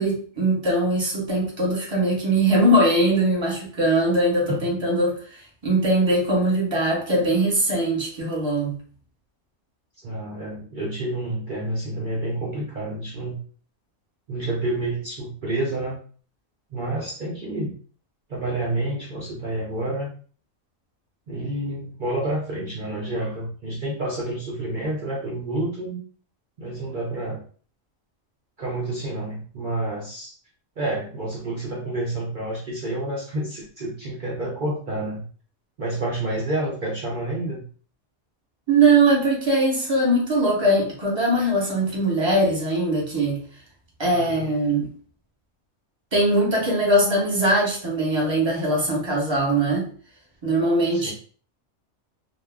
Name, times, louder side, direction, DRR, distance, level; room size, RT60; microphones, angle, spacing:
voice 1, 0.0-8.8 38.7-43.4 44.0-44.9 46.1-49.9 50.4-51.1, right 1 dB, 25° right, -3 dB, 0.9 m, -21 dB
voice 2, 10.0-13.4 14.3-16.0 16.7-17.7 18.3-20.1 21.3-26.0 26.6-27.4 28.6-30.3 30.8-35.2 35.8-37.6 44.1-44.5 50.9-51.1, right 1 dB, 55° right, -4 dB, 0.5 m, -29 dB
2.2 x 2.1 x 3.4 m, 0.43 s
omnidirectional pair, 1.4 m